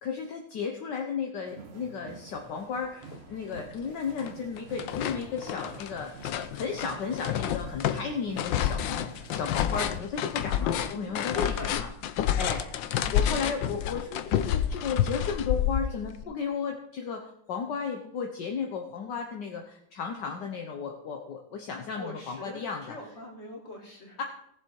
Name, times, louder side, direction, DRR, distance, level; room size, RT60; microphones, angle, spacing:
voice 1, 0.0-11.9 12.4-12.6 13.1-22.9 24.2-24.3, left 6 dB, 65° left, 2 dB, 1.7 m, -34 dB
sound 1, 1.5-10.0, right 5 dB, 40° right, 1.2 m, -48 dB
sound 2, 3.1-3.2 3.6-4.3 4.6-16.2, left 10 dB, 80° left, 1.4 m, -29 dB
voice 2, 10.9-11.8 21.9-24.2, equal, 35° left, -1 dB, 3.3 m, -43 dB
18.5 x 7.4 x 4.7 m, 0.77 s
omnidirectional pair, 2.1 m